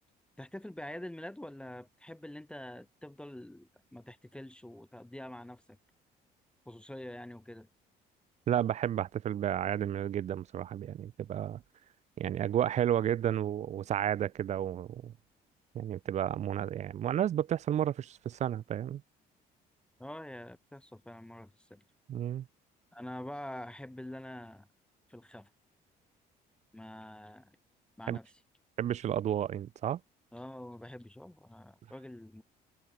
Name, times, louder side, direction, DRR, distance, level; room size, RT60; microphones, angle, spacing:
voice 1, 0.4-5.8 6.7-7.7 20.0-21.8 22.9-24.7 25.1-25.5 26.7-27.5 28.0-28.3 30.3-32.4, left 1 dB, 5° left, 0.6 m, -45 dB
voice 2, 8.5-11.6 12.2-15.1 15.7-19.0 22.1-22.5 28.1-28.2 28.8-30.0, right 10 dB, 45° right, 0.4 m, -32 dB
cardioid pair, 110°, 17 cm